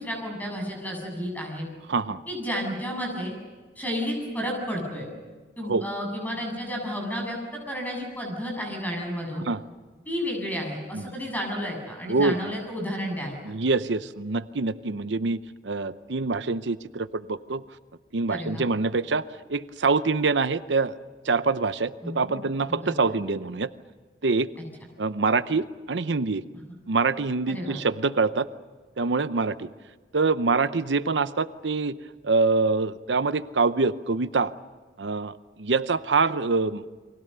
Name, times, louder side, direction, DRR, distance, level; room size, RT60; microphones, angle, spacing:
voice 1, 0.0-1.7 2.3-3.4 3.8-5.1 5.6-7.4 7.7-9.5 10.1-13.3 18.3-18.7 22.0-22.3 22.8-23.1 27.5-27.8, equal, 10° left, 1 dB, 7.5 m, -31 dB
voice 2, 1.9-2.2 5.7-5.9 9.5-9.6 10.9-11.0 12.1-12.3 13.5-15.4 15.6-17.6 18.1-20.9 21.2-23.7 24.2-24.5 25.0-26.4 26.9-28.5 29.0-29.7 30.1-32.0 32.2-34.5 35.0-35.3 35.6-36.8, right 4 dB, 90° right, 13 dB, 0.7 m, -25 dB
30.0 x 23.5 x 6.8 m, 1.4 s
head